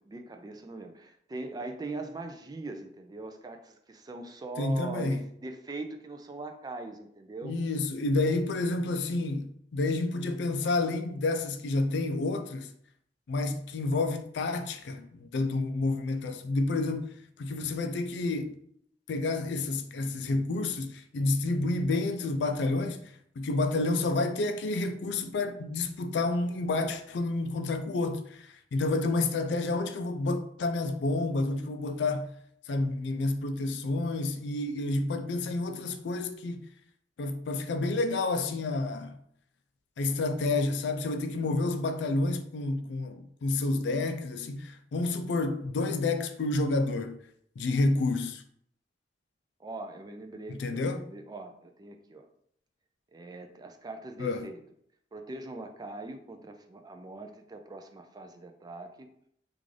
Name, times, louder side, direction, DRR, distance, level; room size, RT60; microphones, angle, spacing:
voice 1, 0.0-7.5 49.6-52.3 53.1-54.6 55.1-59.3, right 2 dB, 20° right, 0.3 m, -42 dB
voice 2, 4.6-5.2 7.4-12.7 13.3-17.1 17.4-18.6 19.1-23.0 23.4-32.3 32.7-36.6 37.2-39.2 40.0-47.2 47.6-48.4 50.5-51.0 54.2-54.5, left 2 dB, 75° left, 0.4 m, -29 dB
3.6 x 2.5 x 3.2 m
head